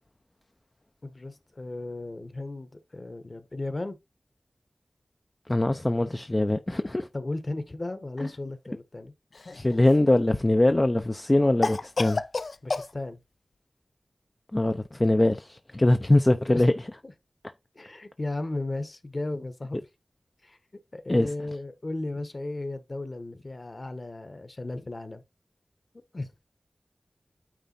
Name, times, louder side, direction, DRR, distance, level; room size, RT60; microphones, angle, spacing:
voice 1, 1.0-4.0 7.1-9.1 12.6-13.2 16.5-16.7 17.0-17.1 17.7-19.8 20.4-20.6 20.9-25.2 26.1-26.3, left 2 dB, 40° left, 1.3 m, -35 dB
voice 2, 5.5-7.1 9.5-12.2 14.5-16.7 21.1-21.3, left 1 dB, 25° left, 0.5 m, -22 dB
Cough, 9.3-10.1 11.6-12.9, left 3 dB, 70° left, 0.6 m, -30 dB
9.1 x 3.8 x 4.1 m
wide cardioid pair, 85°, 0 cm